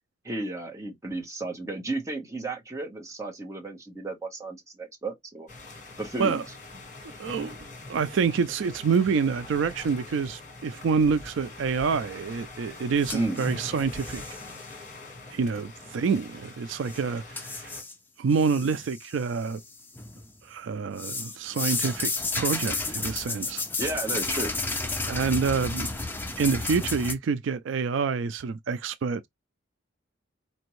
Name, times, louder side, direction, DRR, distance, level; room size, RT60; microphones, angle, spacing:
voice 1, 0.2-5.5 6.0-6.4 13.1-13.4 23.8-24.5, right 2 dB, 15° right, 1.0 m, -33 dB
sound 1, 5.5-17.8, left 2 dB, 40° left, 1.4 m, -43 dB
voice 2, 7.2-7.6 7.9-14.4 15.3-17.7 18.2-19.6 20.4-22.1 22.4-23.6 25.0-26.0 26.4-29.3, right 5 dB, 70° right, 0.4 m, -27 dB
sound 2, 13.0-14.5 16.9-17.0 17.4-17.9 18.3-19.1 19.5-20.3 21.0-27.1, left 3 dB, 10° left, 0.5 m, -32 dB
4.4 x 2.5 x 3.1 m
head